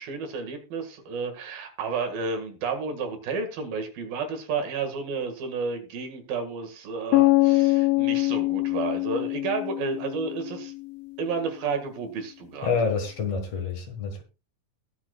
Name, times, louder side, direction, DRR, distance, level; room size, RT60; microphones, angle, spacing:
voice 1, 0.0-10.7 11.2-12.7, right 4 dB, 85° right, 6 dB, 3.8 m, -31 dB
sound 1, 7.1-11.0, left 20 dB, 90° left, 2.6 m, -24 dB
voice 2, 12.6-14.2, left 5 dB, 50° left, 5 dB, 2.5 m, -27 dB
21.5 x 7.3 x 2.4 m, 0.29 s
omnidirectional pair, 4.0 m